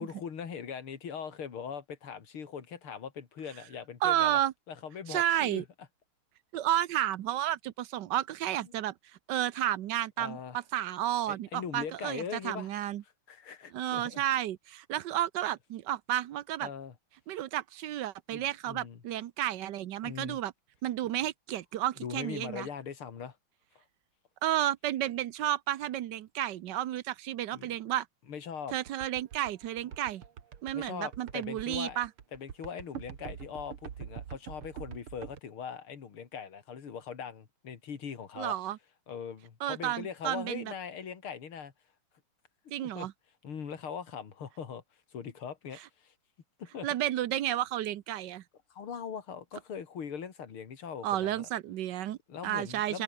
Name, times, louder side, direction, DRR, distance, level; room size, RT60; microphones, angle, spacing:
voice 1, 0.0-4.4 4.7-5.6 8.6-8.8 10.2-10.6 11.3-12.7 13.3-14.2 16.6-16.9 18.3-19.0 20.0-20.4 22.0-23.4 27.5-27.7 28.3-28.8 30.7-32.0 32.3-38.6 39.1-41.7 42.8-43.1 43.4-44.8 45.1-46.1 46.6-46.9 48.7-51.5 52.3-53.0, left 7 dB, 75° left, 3.2 m, -41 dB
voice 2, 4.0-4.5 5.1-5.6 6.5-8.9 9.3-13.0 13.7-16.7 17.3-20.5 20.8-22.7 24.4-28.1 28.7-30.2 30.6-32.1 38.4-38.8 39.6-40.7 42.7-43.1 46.8-48.4 51.0-52.2 52.4-53.0, right 12 dB, 65° right, 1.2 m, -32 dB
sound 1, 28.7-35.4, right 8 dB, 80° right, 2.5 m, -44 dB
omnidirectional pair, 2.4 m